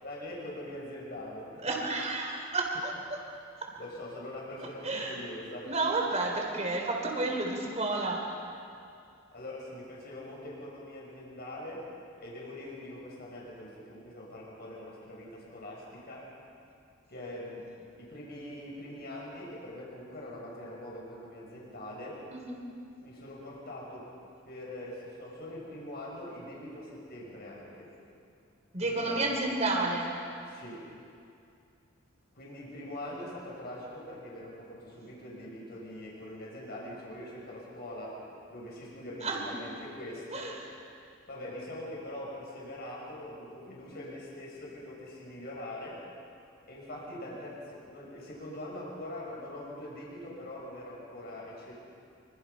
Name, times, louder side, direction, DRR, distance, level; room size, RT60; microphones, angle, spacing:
voice 1, 0.0-1.8 3.7-5.8 9.3-11.8 12.2-16.3 17.1-17.7 18.0-22.2 23.0-24.1 24.4-27.9 28.8-29.5 30.5-30.8 32.3-38.1 38.5-40.5 41.3-46.0 46.7-51.7, left 1 dB, 50° left, -4 dB, 6.6 m, -43 dB
voice 2, 1.6-3.2 3.6-3.7 4.8-5.2 5.6-8.3 22.3-22.6 28.7-30.1 39.2-39.5 40.3-40.6, right 2 dB, 35° right, 1 dB, 4.2 m, -31 dB
26.5 x 25.0 x 5.7 m, 2.5 s
head